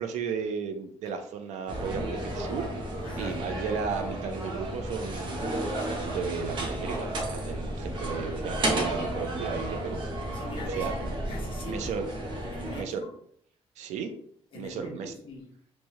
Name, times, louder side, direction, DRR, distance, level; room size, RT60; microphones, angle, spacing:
voice 1, 0.0-2.7 3.2-10.0 10.8-10.9 11.7-12.1 12.8-13.0 13.8-14.1 14.5-15.1, right 6 dB, 90° right, 6 dB, 0.5 m, -34 dB
sound 1, 1.7-12.8, right 1 dB, 45° right, 0.7 m, -33 dB
voice 2, 3.0-3.4 10.3-11.9 12.4-13.1 14.5-15.5, left 2 dB, 45° left, 0 dB, 0.8 m, -43 dB
3.0 x 2.2 x 2.8 m, 0.66 s
cardioid pair, 165°, 12 cm